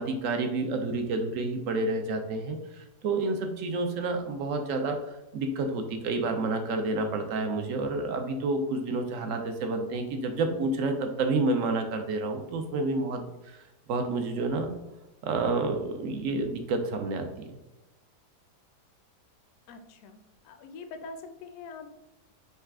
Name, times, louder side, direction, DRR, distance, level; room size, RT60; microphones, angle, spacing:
voice 1, 0.0-13.6 13.9-14.7 15.2-17.3, right 3 dB, 70° right, 5 dB, 0.8 m, -29 dB
voice 2, 19.7-20.2 20.5-21.9, left 4 dB, 70° left, 7 dB, 0.9 m, -43 dB
5.5 x 2.4 x 3.5 m, 0.99 s
omnidirectional pair, 1.8 m